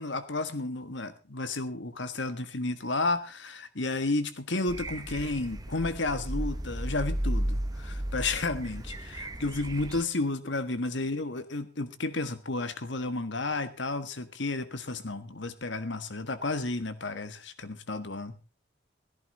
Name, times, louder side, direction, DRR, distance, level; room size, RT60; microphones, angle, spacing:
voice 1, 0.0-18.3, left 2 dB, 70° left, 11 dB, 1.5 m, -32 dB
sound 1, 4.7-10.0, right 1 dB, 20° right, 0.9 m, -34 dB
16.5 x 14.5 x 4.0 m, 0.32 s
head